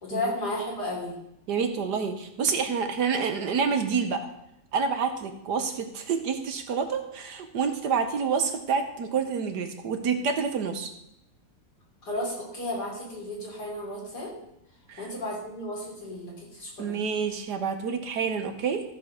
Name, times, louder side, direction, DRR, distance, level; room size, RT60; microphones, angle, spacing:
voice 1, 0.0-1.2 12.1-14.3 15.0-17.0, left 1 dB, 60° left, -3 dB, 3.8 m, -33 dB
voice 2, 1.5-4.3 4.7-10.9 14.9-15.1 16.8-18.8, right 6 dB, 65° right, 6 dB, 1.5 m, -28 dB
14.0 x 5.3 x 6.3 m, 0.79 s
omnidirectional pair, 2.0 m